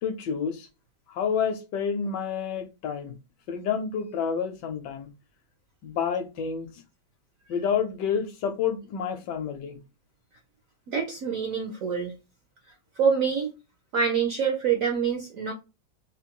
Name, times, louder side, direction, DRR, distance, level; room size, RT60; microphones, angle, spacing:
voice 1, 0.0-0.7 1.1-3.2 3.5-5.1 5.8-6.7 7.5-9.8, left 7 dB, 70° left, 1.2 m, -29 dB
voice 2, 10.9-12.1 13.0-13.5 13.9-15.5, right 6 dB, 65° right, 0.8 m, -26 dB
3.7 x 2.5 x 2.9 m
omnidirectional pair, 2.1 m